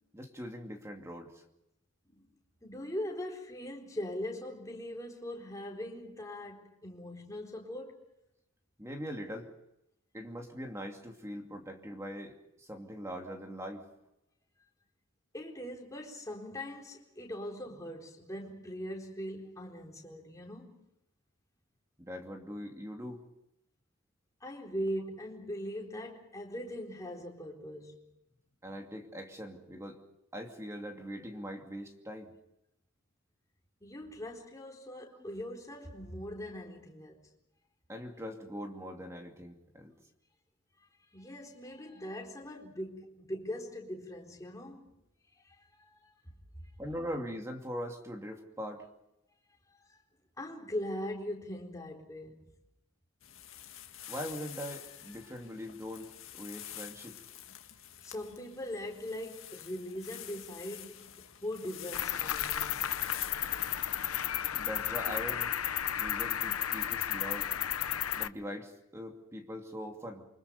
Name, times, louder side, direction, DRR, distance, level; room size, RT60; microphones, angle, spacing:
voice 1, 0.1-1.4 8.8-9.5 10.1-13.9 22.0-23.2 28.6-30.0 30.3-32.3 37.9-39.9 46.8-48.9 54.1-56.1 56.3-57.2 64.5-65.5 66.0-67.5 68.2-70.3, equal, 15° right, 2.5 m, -41 dB
voice 2, 2.6-8.0 15.3-20.8 24.4-28.1 33.8-37.3 41.1-44.9 45.4-46.1 49.9-50.0 50.4-52.5 58.0-62.9, left 1 dB, 15° left, 4.2 m, -41 dB
sound 1, 53.2-64.3, left 12 dB, 65° left, 1.9 m, -48 dB
Cricket, 61.9-68.3, left 11 dB, 85° left, 0.9 m, -33 dB
28.0 x 25.5 x 5.3 m
head